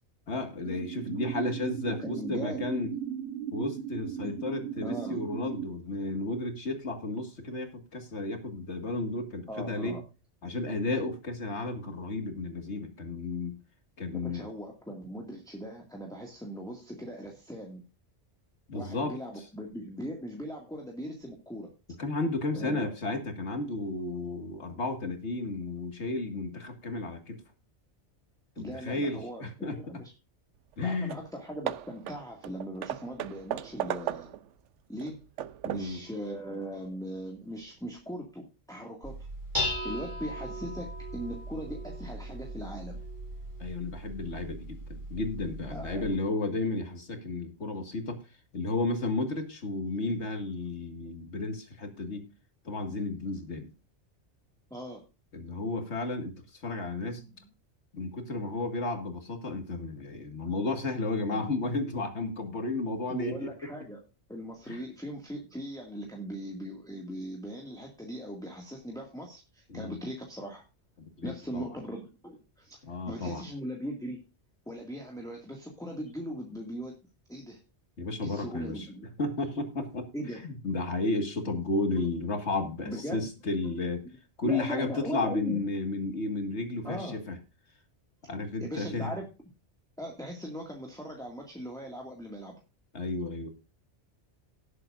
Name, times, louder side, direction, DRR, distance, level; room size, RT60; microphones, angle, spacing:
voice 1, 0.3-2.9 3.5-10.0 10.4-13.6 14.0-14.4 18.7-19.1 22.0-27.4 28.6-29.8 30.8-31.2 35.6-36.0 43.6-48.2 48.5-52.3 52.6-53.7 55.3-57.3 57.9-63.5 64.7-64.8 69.7-70.0 71.0-71.7 72.9-73.4 78.0-78.9 79.2-80.1 80.4-84.0 84.4-87.4 88.3-89.1 92.9-93.5, left 2 dB, 75° left, 6 dB, 2.2 m, -33 dB
sound 1, 0.6-5.7, right 9 dB, 70° right, 1.7 m, -37 dB
voice 2, 2.0-2.7 4.2-4.4 4.8-5.2 9.5-10.0 14.2-17.8 18.7-21.7 22.5-22.9 28.6-30.1 30.8-34.3 34.9-35.3 35.6-39.2 39.8-43.0 45.7-46.4 54.7-55.0 57.2-57.3 61.3-61.4 63.1-64.0 64.3-70.6 71.2-72.8 73.1-74.2 74.7-76.9 77.3-77.6 78.2-79.0 80.1-80.4 82.9-83.3 84.4-85.6 86.8-87.2 88.6-89.3 90.0-92.6, equal, 5° left, -1 dB, 2.0 m, -39 dB
Hammer / Wood, 30.7-30.8 31.1-31.3 31.7-34.5 35.0-36.0, right 11 dB, 90° right, 1.0 m, -36 dB
Dishes pots and pans, 39.0-46.1, equal, 25° right, 3.8 m, -38 dB
18.0 x 7.7 x 2.6 m, 0.31 s
omnidirectional pair, 1.2 m